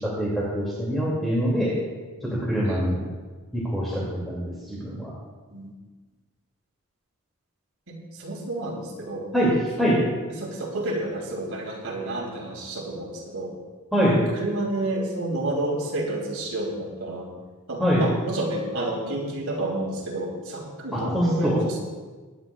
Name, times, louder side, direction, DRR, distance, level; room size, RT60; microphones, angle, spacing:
voice 1, 0.0-1.7 2.4-3.0 3.5-5.1 9.3-10.0 13.9-14.3 17.8-18.1 20.9-21.6, equal, ahead, -7 dB, 2.4 m, -24 dB
voice 2, 7.9-9.3 9.8-10.0 10.4-13.5 14.3-17.4 17.7-21.8, right 1 dB, 70° right, -3 dB, 3.1 m, -30 dB
22.5 x 9.8 x 2.4 m, 1.3 s
head